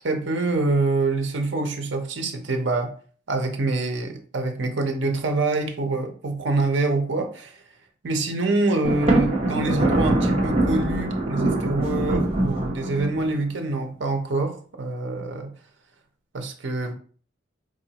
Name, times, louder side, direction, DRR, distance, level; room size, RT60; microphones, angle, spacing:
voice 1, 0.0-2.9 3.3-7.5 8.0-15.5 16.3-16.9, right 2 dB, 70° right, 5 dB, 0.7 m, -25 dB
Thunder, 8.8-13.4, right 2 dB, 35° right, 1.0 m, -23 dB
4.8 x 2.5 x 2.9 m, 0.42 s
head